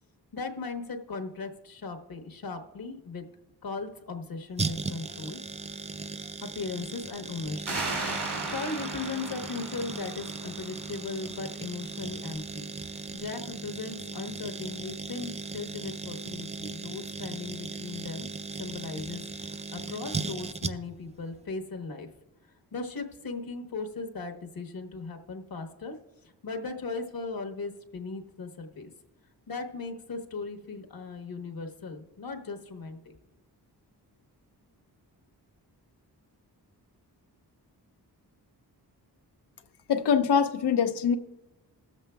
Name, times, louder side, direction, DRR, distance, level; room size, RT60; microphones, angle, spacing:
voice 1, 0.3-3.2 3.6-5.4 6.4-7.8 8.1-18.3 18.6-22.1 22.7-26.0 26.2-28.9 29.5-33.2, left 4 dB, 60° left, 5 dB, 1.1 m, -38 dB
sound 1, 4.6-21.1 21.3-21.4, right 4 dB, 20° right, 0.3 m, -37 dB
sound 2, 7.7-11.0, right 3 dB, 70° right, 2.2 m, -36 dB
voice 2, 39.9-41.2, left 7 dB, 80° left, 9 dB, 0.7 m, -23 dB
21.5 x 7.3 x 2.3 m, 1.0 s
cardioid pair, 65°, 40 cm